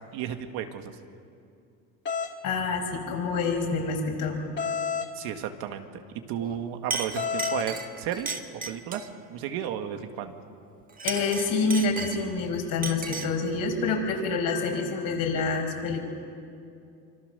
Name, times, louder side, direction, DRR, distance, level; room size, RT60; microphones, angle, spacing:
voice 1, 0.1-1.0 5.1-6.0 6.3-10.4, right 9 dB, 85° right, 6 dB, 2.0 m, -34 dB
sound 1, 2.1-2.3 4.6-5.1 7.2-7.7, left 6 dB, 30° left, 2.4 m, -29 dB
voice 2, 2.4-4.4 11.0-16.0, left 4 dB, 65° left, 2 dB, 5.7 m, -27 dB
Chink clink, 6.4-6.6 6.9-9.1 10.9-12.4 12.8-13.4, right 4 dB, 25° right, 1.7 m, -35 dB
26.0 x 25.5 x 6.9 m, 2.5 s
cardioid pair, 130°, 36 cm